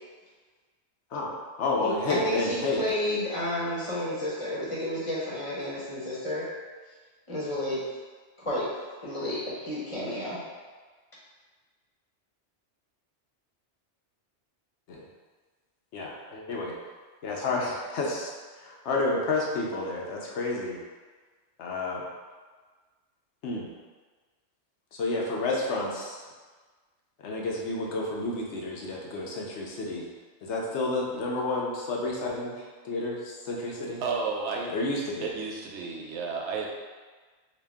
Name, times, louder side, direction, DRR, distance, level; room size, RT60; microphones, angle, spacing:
voice 1, 1.1-2.8 14.9-15.1 15.9-16.8 17.2-18.3 18.6-20.8 21.6-22.0 23.4-23.7 24.9-26.2 27.2-30.1 30.4-34.0 34.7-35.3, left 2 dB, 75° left, -2 dB, 1.0 m, -30 dB
voice 2, 1.8-6.5 7.3-7.8 8.4-8.7 9.0-10.4, left 1 dB, 30° left, -7 dB, 1.0 m, -31 dB
voice 3, 34.0-34.8 35.2-36.7, right 4 dB, 75° right, -1 dB, 0.9 m, -32 dB
3.9 x 2.4 x 3.4 m, 1.4 s
omnidirectional pair, 1.2 m